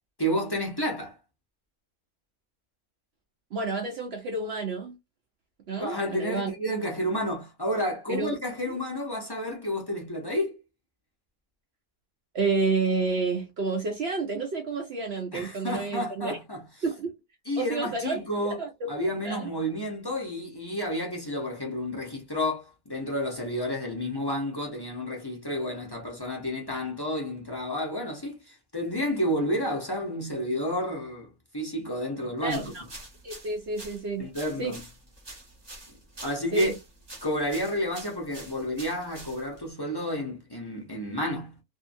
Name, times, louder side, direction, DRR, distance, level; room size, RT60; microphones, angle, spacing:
voice 1, 0.2-1.2 5.8-10.6 15.3-16.6 17.5-18.6 18.9-31.3 31.5-32.7 34.2-34.8 36.2-36.7 37.2-41.6, equal, 25° left, 0.6 m, -30 dB
voice 2, 3.5-5.0 5.7-6.5 8.1-8.3 12.3-16.4 16.8-17.1 17.6-18.9 19.2-19.5 32.4-32.8 33.2-34.3 34.6-34.8 36.5-36.7, right 4 dB, 60° right, 0.7 m, -30 dB
sound 1, 32.4-39.7, right 2 dB, 20° right, 0.8 m, -46 dB
2.7 x 2.6 x 2.5 m
omnidirectional pair, 1.5 m